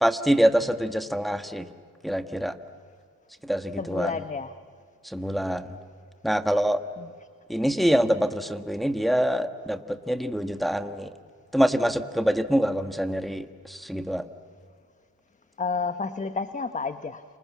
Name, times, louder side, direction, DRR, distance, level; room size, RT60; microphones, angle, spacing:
voice 1, 0.0-1.7 2.0-2.5 3.4-4.2 5.0-5.7 6.2-6.8 7.5-11.1 11.5-14.3, equal, ahead, 7 dB, 1.5 m, -25 dB
voice 2, 3.8-4.5 7.0-7.1 15.6-17.2, left 4 dB, 25° left, 10 dB, 1.1 m, -30 dB
29.5 x 27.0 x 7.4 m, 2.1 s
cardioid pair, 90°, 30 cm